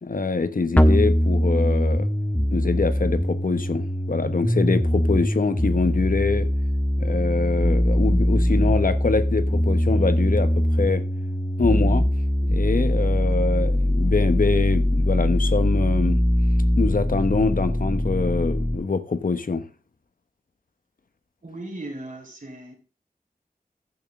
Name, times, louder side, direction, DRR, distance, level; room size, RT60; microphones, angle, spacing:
voice 1, 0.0-2.1 2.5-6.5 7.0-11.0 11.6-12.1 12.5-16.2 16.8-19.7, left 4 dB, 65° left, 1.2 m, -24 dB
sound 1, 0.8-18.8, equal, 10° left, 1.3 m, -22 dB
voice 2, 21.4-22.7, right 2 dB, 60° right, 4.6 m, -37 dB
14.5 x 7.2 x 3.7 m
wide cardioid pair, 60°, 15 cm